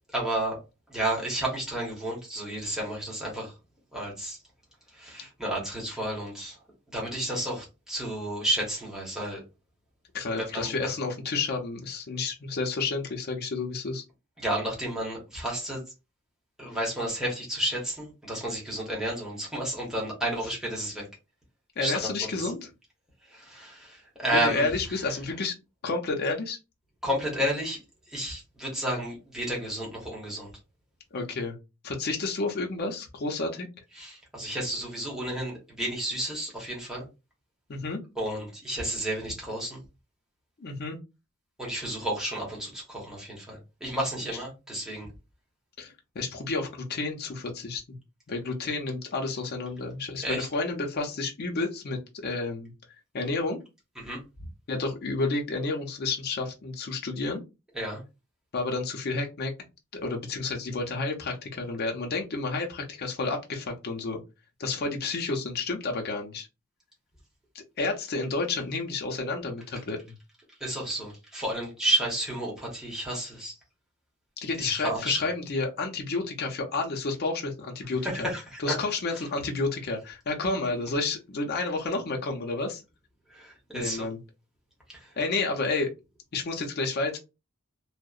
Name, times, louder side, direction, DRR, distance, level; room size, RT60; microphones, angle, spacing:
voice 1, 0.1-0.6 0.9-3.5 3.9-4.4 4.9-6.6 6.9-9.4 10.4-10.7 14.4-15.8 16.6-21.1 21.8-22.0 22.4-22.5 23.3-25.0 27.0-27.8 28.1-30.5 33.9-37.1 38.2-39.8 41.6-45.1 50.2-50.5 54.0-54.2 57.7-58.0 70.6-73.5 74.6-75.2 78.1-78.7 79.1-79.2 83.3-84.1 84.9-85.2, right 1 dB, 5° right, -4 dB, 0.9 m, -31 dB
voice 2, 10.1-14.0 21.8-22.6 24.3-25.5 25.8-26.6 31.1-31.6 31.8-33.7 37.7-38.0 40.6-41.0 45.8-48.0 48.3-52.7 53.1-53.6 54.7-57.4 58.5-59.5 59.9-64.2 64.6-66.5 67.5-70.0 74.4-78.3 78.6-82.8 83.7-84.2 85.2-85.9 86.3-87.2, left 3 dB, 45° left, 1 dB, 0.5 m, -30 dB
2.7 x 2.0 x 2.3 m, 0.27 s
head